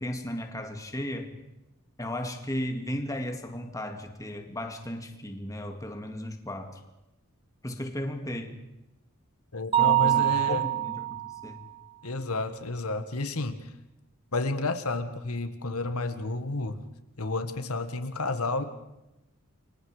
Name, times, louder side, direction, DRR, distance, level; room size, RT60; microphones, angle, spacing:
voice 1, 0.0-1.3 2.0-6.8 7.6-8.6 9.8-11.6, left 1 dB, 15° left, 5 dB, 2.2 m, -35 dB
voice 2, 9.5-10.7 12.0-13.6 14.3-16.8 17.2-18.6, left 3 dB, 80° left, 9 dB, 1.7 m, -31 dB
Mallet percussion, 9.7-11.5, right 15 dB, 25° right, 1.0 m, -25 dB
29.5 x 24.5 x 5.0 m, 0.95 s
head